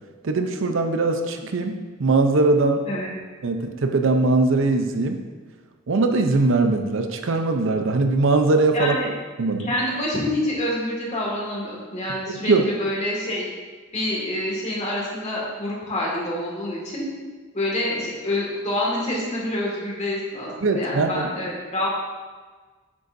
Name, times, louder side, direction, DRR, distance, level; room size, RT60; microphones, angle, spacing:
voice 1, 0.2-2.8 3.4-5.2 5.9-9.0 9.4-9.7 12.4-12.6 20.6-21.2, right 3 dB, 65° right, 5 dB, 0.6 m, -21 dB
voice 2, 8.7-9.1 9.6-13.5 13.9-17.0 17.5-21.9, left 1 dB, 35° left, -4 dB, 1.9 m, -27 dB
8.5 x 6.7 x 2.6 m, 1.4 s
head